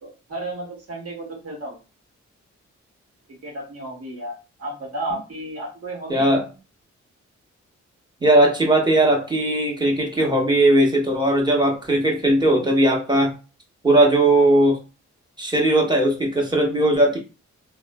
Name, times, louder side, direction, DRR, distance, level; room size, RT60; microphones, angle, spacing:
voice 1, 0.0-1.8 3.4-6.3, right 1 dB, 55° right, 0 dB, 1.2 m, -33 dB
voice 2, 6.1-6.5 8.2-13.3 13.8-14.8 15.4-17.2, right 1 dB, 15° right, 0 dB, 1.0 m, -18 dB
2.9 x 2.0 x 2.2 m, 0.31 s
cardioid pair, 60°, 30 cm